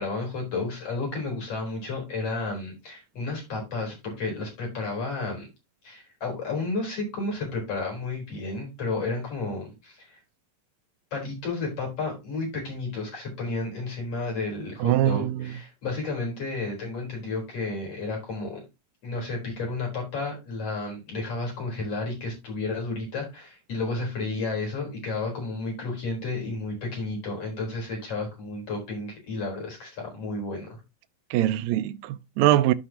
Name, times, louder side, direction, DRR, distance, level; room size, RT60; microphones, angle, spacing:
voice 1, 0.0-5.5 5.8-10.2 11.1-18.6 19.0-30.8, left 3 dB, 50° left, 5.0 m, -32 dB
voice 2, 14.8-15.5 31.3-32.7, right 13 dB, 80° right, 1.7 m, -23 dB
13.5 x 5.0 x 2.9 m
omnidirectional pair, 3.6 m